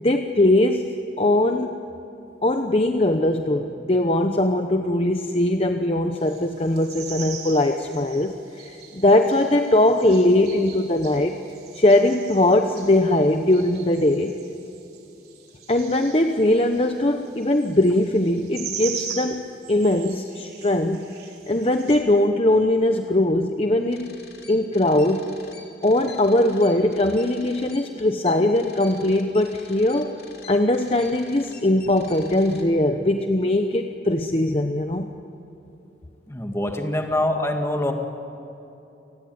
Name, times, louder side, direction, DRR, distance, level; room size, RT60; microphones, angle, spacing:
voice 1, 0.0-1.8 2.4-11.3 11.7-14.3 15.7-19.4 19.7-21.1 21.5-24.2 24.5-25.3 25.8-30.1 30.5-35.1, left 1 dB, 30° left, 6 dB, 0.9 m, -20 dB
sound 1, 6.2-22.0, right 7 dB, 55° right, 4.3 m, -40 dB
sound 2, 23.9-32.6, left 4 dB, 55° left, 3.8 m, -46 dB
voice 2, 36.3-37.9, left 1 dB, 15° left, 3 dB, 2.1 m, -24 dB
30.0 x 19.5 x 9.5 m, 2.9 s
head